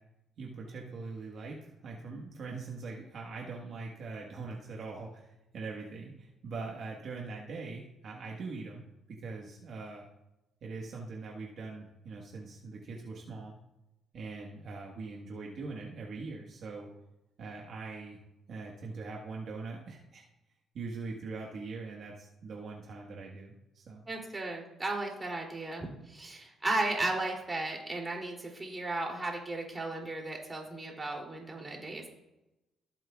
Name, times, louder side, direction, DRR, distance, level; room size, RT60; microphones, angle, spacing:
voice 1, 0.4-10.0 10.6-13.5 14.1-16.9 17.4-18.2 18.5-20.2 20.7-24.0, right 4 dB, 60° right, -1 dB, 1.5 m, -42 dB
voice 2, 24.1-32.1, right 2 dB, 25° right, 0 dB, 2.9 m, -35 dB
17.5 x 7.7 x 2.4 m, 0.93 s
cardioid pair, 90°, 0 cm